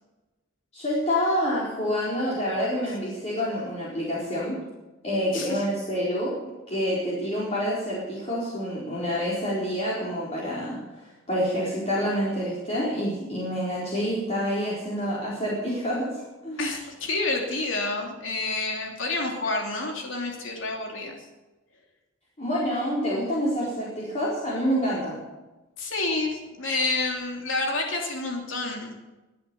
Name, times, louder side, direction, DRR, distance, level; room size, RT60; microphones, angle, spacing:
voice 1, 0.7-4.6 5.0-6.3 6.7-10.8 11.3-16.6 22.4-25.2, equal, 35° left, -6 dB, 4.4 m, -27 dB
voice 2, 16.6-21.3 25.8-28.9, left 2 dB, 70° left, 1 dB, 3.0 m, -29 dB
23.5 x 8.6 x 7.0 m, 1.1 s
head